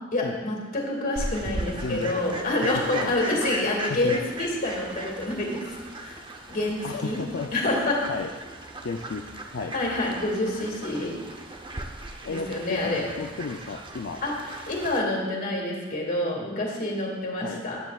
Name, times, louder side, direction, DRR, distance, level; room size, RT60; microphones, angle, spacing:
voice 1, 0.1-5.7 6.0-6.2 6.5-7.2 7.5-8.0 9.7-11.1 12.3-13.1 14.2-14.4 14.7-17.8, left 1 dB, 45° left, -2 dB, 2.2 m, -27 dB
Fowl, 1.2-15.0, right 1 dB, 25° right, 0.7 m, -38 dB
voice 2, 1.7-2.2 2.6-3.4 3.8-4.2 6.8-7.5 8.1-8.3 8.8-9.3 9.5-9.7 12.2-14.2 17.4-17.6, left 4 dB, 65° left, 3 dB, 0.5 m, -33 dB
13.5 x 10.0 x 2.4 m, 1.4 s
head